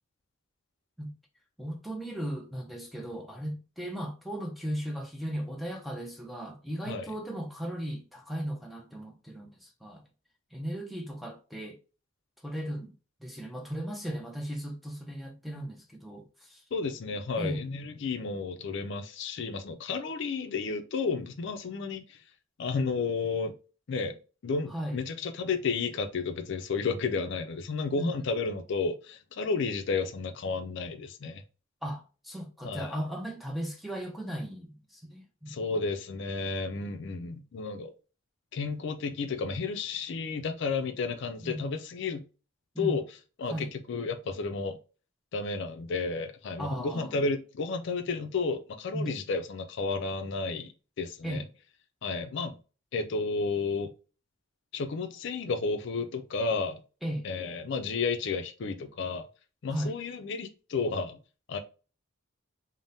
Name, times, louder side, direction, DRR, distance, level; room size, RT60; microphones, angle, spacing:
voice 1, 1.6-10.0 10.5-11.8 12.4-12.9 13.2-16.6 17.4-17.6 24.7-25.0 28.0-28.2 31.8-35.8 41.4-41.7 42.7-43.0 43.5-43.7 46.6-47.2 48.9-49.2 51.2-51.5 57.0-57.3 59.7-60.0, equal, ahead, 0.4 m, -36 dB
voice 2, 16.7-22.2 22.6-23.5 23.9-24.2 24.4-31.4 32.6-33.0 35.5-37.9 38.5-42.2 42.8-43.0 43.4-44.8 45.3-51.4 52.0-52.6 52.9-53.9 54.7-56.8 57.2-59.3 59.6-61.2 61.5-61.6, left 4 dB, 60° left, 0.4 m, -32 dB
3.4 x 2.0 x 2.6 m
head